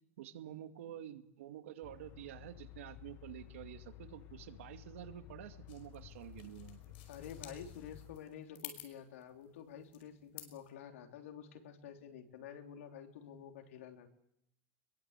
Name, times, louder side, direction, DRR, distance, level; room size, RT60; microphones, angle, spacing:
voice 1, 0.2-6.8, right 11 dB, 85° right, 7 dB, 2.4 m, -49 dB
sound 1, 1.8-8.2, left 14 dB, 35° left, 1.3 m, -54 dB
sound 2, 5.7-10.7, left 11 dB, 60° left, 5.3 m, -53 dB
voice 2, 7.1-14.1, left 8 dB, 90° left, 4 dB, 3.6 m, -50 dB
23.5 x 22.0 x 8.2 m, 0.75 s
supercardioid pair, 170°, 7 cm